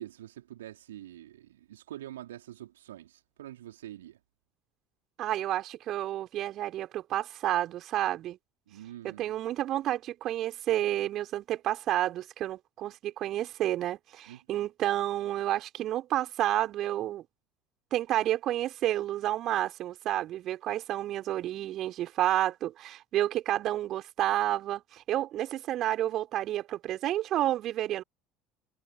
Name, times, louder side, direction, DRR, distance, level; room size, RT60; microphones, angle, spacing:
voice 1, 0.0-4.2 8.7-9.4 14.3-14.4, right 13 dB, 70° right, 4.2 m, -45 dB
voice 2, 5.2-8.4 9.0-17.2 17.9-28.0, right 13 dB, 45° right, 4.6 m, -30 dB
figure-of-eight pair, 65°, 0 cm